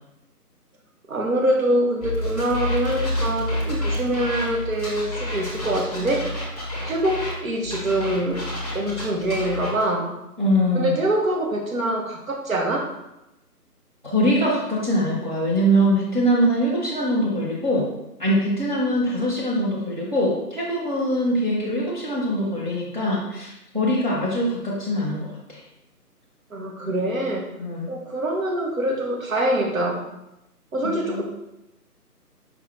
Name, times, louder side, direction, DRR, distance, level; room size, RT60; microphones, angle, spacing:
voice 1, 1.1-6.3 6.8-8.5 8.7-10.1 10.7-12.9 26.5-27.5 27.9-30.0 30.7-31.2, right 1 dB, 55° right, 0 dB, 1.0 m, -24 dB
sound 1, 2.0-7.3 7.6-9.8, left 1 dB, 25° left, 0.7 m, -29 dB
voice 2, 10.4-10.9 14.0-17.9 18.2-25.6 27.6-27.9 30.8-31.2, equal, 30° right, -6 dB, 0.6 m, -23 dB
4.7 x 2.5 x 3.2 m, 0.88 s
figure-of-eight pair, 155°, 47 cm